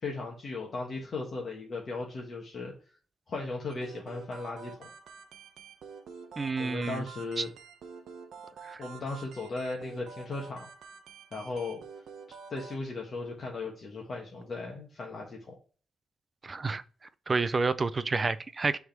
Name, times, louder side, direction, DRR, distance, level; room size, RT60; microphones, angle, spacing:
voice 1, 0.0-2.7 3.3-4.9 6.6-7.5 8.8-10.7 11.3-11.8 12.5-15.5, left 3 dB, 35° left, 1.2 m, -37 dB
sound 1, 3.7-12.8, right 6 dB, 60° right, 0.9 m, -48 dB
voice 2, 6.4-7.0 7.4-7.5 8.6-8.8 16.4-16.8 17.3-18.8, right 4 dB, 20° right, 0.4 m, -29 dB
6.5 x 3.6 x 4.5 m
cardioid pair, 165°, 0 cm